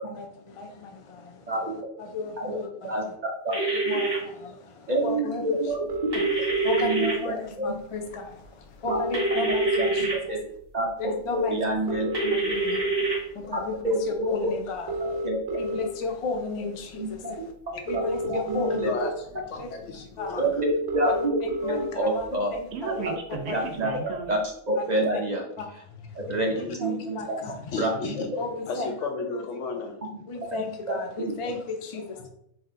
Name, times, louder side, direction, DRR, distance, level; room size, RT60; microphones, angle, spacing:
voice 1, 0.1-1.5 2.0-3.2 3.5-5.7 6.4-10.4 11.0-11.6 12.3-17.5 17.9-18.9 19.6-19.7 20.2-20.4 21.0-21.1 21.6-23.2 23.5-23.6 24.8-24.9 25.6-25.7 26.1-27.6 28.4-28.9 30.3-32.3, left 3 dB, 55° left, 3 dB, 0.3 m, -34 dB
sound 1, 3.5-4.2 6.1-7.1 9.1-10.2 12.1-13.2, right 3 dB, 20° right, 1.4 m, -26 dB
voice 2, 4.9-6.3 6.7-7.7 8.8-9.0 9.4-9.5 9.7-10.4 10.7-12.3 13.5-14.5 15.0-15.4 17.0-17.3 17.9-18.9 20.4-21.4 21.6-22.5 23.5-23.9 24.3-24.4 24.7-25.5 26.1-26.5 26.8-27.4 27.8-27.9 28.3-28.4 30.9-31.3, right 1 dB, 50° right, 0 dB, 0.6 m, -28 dB
sound 2, 5.9-6.9 8.1-8.2 8.4-8.5 8.7-10.2 10.7-10.9 11.7-12.9 13.6-13.8 14.7-15.9 17.1-17.2 17.7-18.9 19.6-19.7 20.0-20.1 20.3-20.4 20.6-21.9 22.2-24.4, right 1 dB, 85° right, 0.9 m, -31 dB
voice 3, 18.8-20.4 26.3-26.7 27.7-28.3 28.7-30.0 31.4-31.6 31.9-32.3, left 4 dB, 85° left, 3 dB, 1.1 m, -33 dB
4.8 x 2.8 x 2.5 m, 0.70 s
omnidirectional pair, 1.2 m